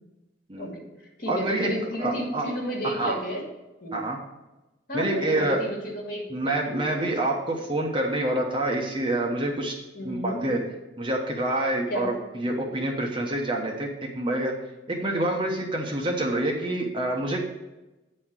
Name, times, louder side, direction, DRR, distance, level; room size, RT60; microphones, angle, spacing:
voice 1, 0.6-0.9 1.2-3.4 3.8-4.0 4.9-7.2 9.9-10.4 11.9-12.1, equal, 50° left, -1 dB, 2.2 m, -32 dB
voice 2, 1.3-1.7 2.0-2.5 2.8-3.2 3.9-4.2 4.9-5.6 6.3-9.7 10.0-10.6 11.0-14.5 14.9-17.4, right 1 dB, 25° right, 0 dB, 1.0 m, -27 dB
9.1 x 4.3 x 7.3 m, 1.0 s
head